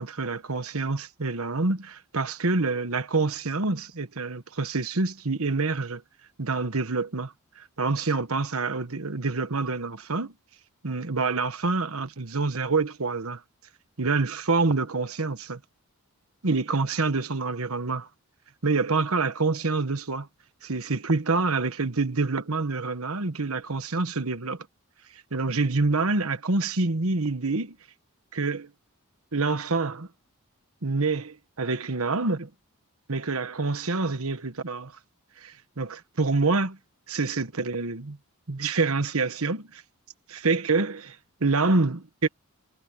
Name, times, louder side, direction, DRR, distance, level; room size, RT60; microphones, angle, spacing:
voice 1, 0.0-6.0 6.4-10.3 10.8-13.4 14.0-15.6 16.4-18.1 18.6-20.3 20.6-24.6 25.3-27.8 28.3-28.7 29.3-30.1 30.8-32.5 33.1-34.9 35.4-36.8 37.1-38.2 38.5-39.8 40.3-42.1, right 3 dB, 70° right, 1.3 m, -27 dB
head